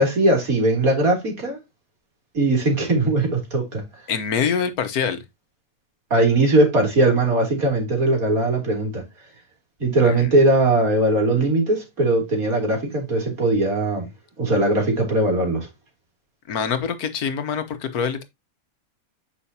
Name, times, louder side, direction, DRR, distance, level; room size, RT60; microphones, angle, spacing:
voice 1, 0.0-1.6 2.3-3.8 6.1-9.0 9.8-14.1 14.4-15.7, right 2 dB, 75° right, 3.4 m, -20 dB
voice 2, 4.1-5.2 10.0-10.3 16.5-18.2, left 7 dB, 90° left, 1.6 m, -25 dB
8.6 x 5.7 x 2.8 m
omnidirectional pair, 1.5 m